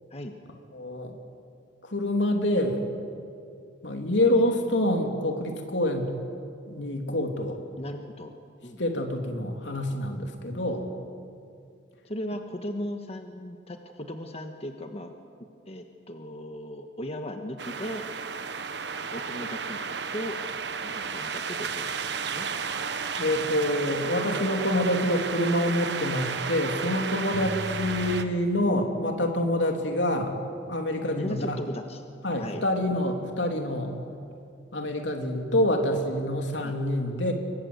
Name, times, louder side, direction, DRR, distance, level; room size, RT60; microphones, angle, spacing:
voice 1, 0.7-1.1 1.8-2.9 3.8-6.1 6.7-7.6 8.8-10.8 23.2-30.3 30.7-31.6 32.2-34.0 34.7-37.3, left 1 dB, 80° left, 3 dB, 3.2 m, -26 dB
voice 2, 7.8-8.3 8.6-9.0 12.0-15.2 15.7-18.1 19.1-19.8 20.1-20.4 20.8-22.5 31.2-32.0 32.4-32.7 36.6-36.8, left 1 dB, 35° left, 5 dB, 1.5 m, -37 dB
sound 1, 17.6-28.2, right 5 dB, 70° right, 1.3 m, -33 dB
29.0 x 23.5 x 8.1 m, 2.4 s
head